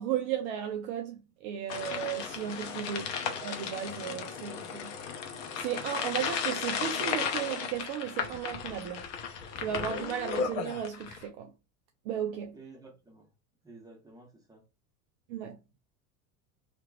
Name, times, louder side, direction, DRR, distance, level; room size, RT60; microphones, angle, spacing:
voice 1, 0.0-3.1 3.4-5.0 5.6-9.0 9.6-11.5 12.1-12.6 15.3-15.8, right 9 dB, 45° right, 0.5 m, -35 dB
sound 1, 1.7-11.3, left 6 dB, 50° left, 0.8 m, -35 dB
voice 2, 12.5-13.3 13.6-14.6, right 3 dB, 10° right, 1.1 m, -52 dB
2.8 x 2.6 x 2.4 m
figure-of-eight pair, 80°, 47 cm